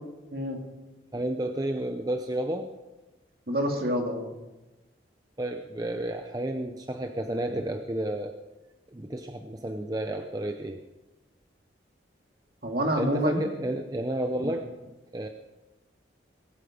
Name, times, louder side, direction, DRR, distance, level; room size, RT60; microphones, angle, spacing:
voice 1, 1.1-2.7 5.4-8.4 8.9-10.8 12.9-15.3, right 1 dB, 20° right, 6 dB, 0.6 m, -31 dB
voice 2, 3.5-4.3 12.6-13.4 14.4-14.5, equal, 55° right, 2 dB, 2.4 m, -27 dB
22.5 x 9.2 x 5.1 m, 1.1 s
head